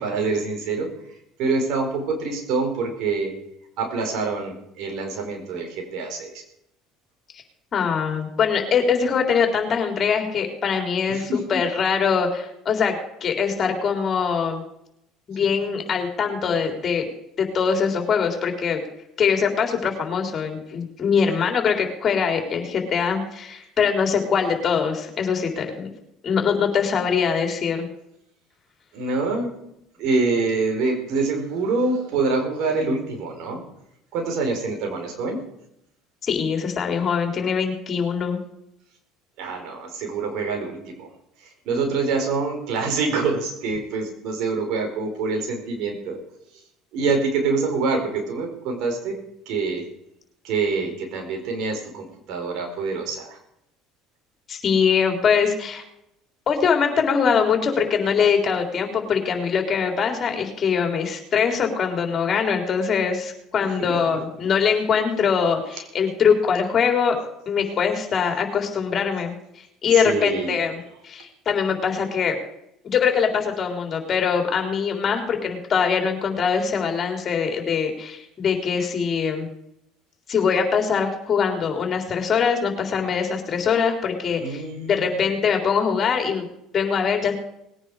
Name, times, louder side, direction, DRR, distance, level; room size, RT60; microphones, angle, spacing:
voice 1, 0.0-3.4 3.8-6.4 11.1-11.6 28.9-29.5 30.0-33.6 34.1-35.4 39.4-41.1 41.4-46.2 46.9-49.8 50.4-53.4 63.8-64.0 69.9-70.6 84.4-85.3, right 4 dB, 65° right, 3 dB, 4.7 m, -26 dB
voice 2, 7.7-14.6 15.3-17.1 17.4-18.8 19.2-25.9 26.2-27.9 36.2-38.4 54.5-55.8 56.5-67.2 67.5-70.7 71.0-72.4 72.8-79.5 80.3-84.6 84.9-86.5 86.7-87.3, left 6 dB, 40° left, 3 dB, 3.7 m, -22 dB
20.0 x 9.8 x 4.9 m, 0.78 s
hypercardioid pair, 80°, 0 cm